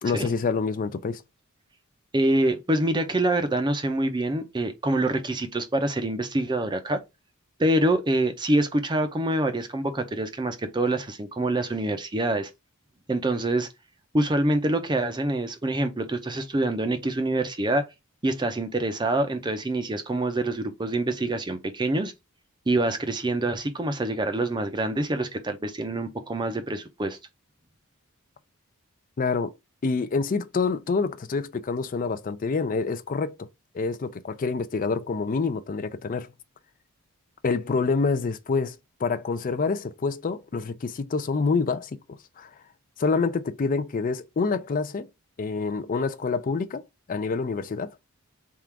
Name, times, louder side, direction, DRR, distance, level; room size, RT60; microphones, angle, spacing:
voice 1, 0.0-1.2 29.2-29.5 29.8-33.3 33.7-36.3 37.4-42.0 42.4-42.5 43.0-45.1 45.4-46.8 47.1-48.0, left 4 dB, 40° left, 0.4 m, -27 dB
voice 2, 2.1-7.0 7.6-12.5 13.1-13.7 14.1-17.8 18.2-22.1 22.7-27.2, right 1 dB, 20° right, 0.6 m, -26 dB
3.6 x 2.5 x 4.5 m
head